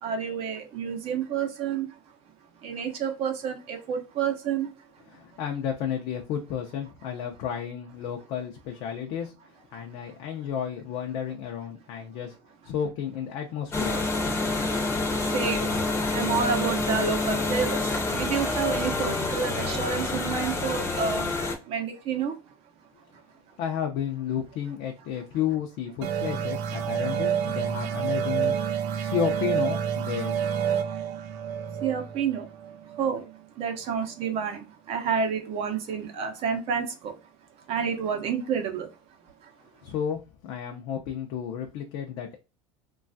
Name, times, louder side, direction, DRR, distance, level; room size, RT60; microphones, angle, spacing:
voice 1, 0.0-2.1 2.6-4.9 9.7-10.1 14.5-15.8 16.1-22.5 23.1-23.6 26.8-26.9 28.7-29.0 31.2-31.4 31.8-32.5 32.9-33.2 33.5-37.3 37.7-39.0 39.2-39.5, right 6 dB, 45° right, 0.6 m, -30 dB
voice 2, 5.1-9.3 9.7-12.4 12.6-14.0 23.6-28.6 29.0-30.4 39.8-42.4, left 9 dB, 55° left, 0.5 m, -32 dB
sound 1, 13.7-21.6, left 2 dB, 20° left, 0.6 m, -27 dB
sound 2, 26.0-33.3, right 8 dB, 85° right, 0.5 m, -29 dB
3.1 x 2.3 x 2.5 m
cardioid pair, 160°, 14 cm